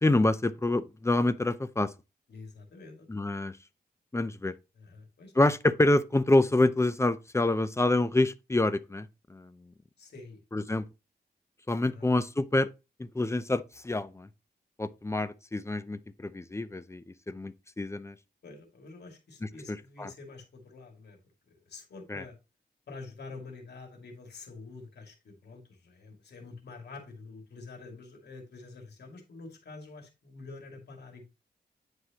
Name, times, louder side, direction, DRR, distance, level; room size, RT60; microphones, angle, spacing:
voice 1, 0.0-1.9 3.1-3.5 4.1-4.5 5.4-9.1 9.3-9.5 10.5-10.8 11.7-12.7 13.0-14.3 14.8-18.1 19.4-20.1 22.1-22.2, left 2 dB, 15° left, 0.5 m, -27 dB
voice 2, 2.3-3.1 4.8-5.3 10.0-10.4 11.9-12.1 18.4-21.2 21.7-22.4 22.9-31.2, left 3 dB, 85° left, 2.4 m, -47 dB
9.6 x 4.8 x 3.0 m
wide cardioid pair, 125°, 17 cm